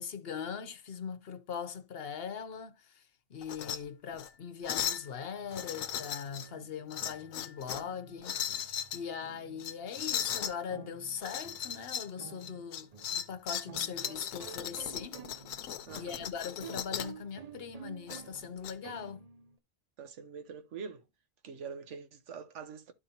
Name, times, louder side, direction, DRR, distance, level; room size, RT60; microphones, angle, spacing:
voice 1, 0.0-3.0 3.3-15.2 15.9-19.3, left 7 dB, 55° left, 0.9 m, -41 dB
sound 1, 3.4-3.8 4.1-4.3 4.6-5.1 5.5-6.5 6.9-7.9 8.2-9.0 9.6-10.5 11.2-12.1 12.4-17.2 18.1-18.7, left 9 dB, 90° left, 1.1 m, -37 dB
sound 2, 5.3-19.6, right 6 dB, 50° right, 0.5 m, -52 dB
voice 2, 15.8-16.3 20.0-21.1 21.4-22.9, right 6 dB, 65° right, 1.2 m, -44 dB
12.0 x 4.4 x 2.8 m
omnidirectional pair, 1.4 m